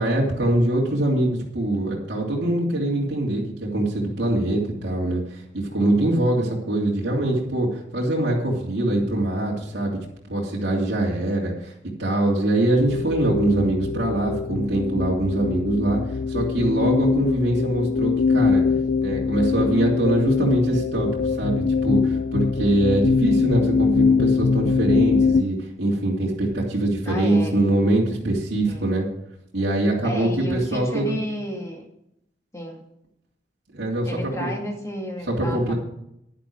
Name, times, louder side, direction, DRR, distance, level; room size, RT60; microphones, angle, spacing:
voice 1, 0.0-10.0 10.3-11.7 12.0-16.0 16.3-18.6 19.0-29.1 29.5-31.2 33.7-34.5 35.3-35.7, right 1 dB, 65° right, -4 dB, 3.0 m, -23 dB
sound 1, 12.7-25.4, left 5 dB, 65° left, 0.5 m, -22 dB
voice 2, 27.0-27.5 28.7-28.9 30.0-31.9 32.5-32.8 34.0-35.7, equal, 15° left, 1 dB, 2.1 m, -32 dB
11.0 x 10.5 x 4.7 m, 0.80 s
head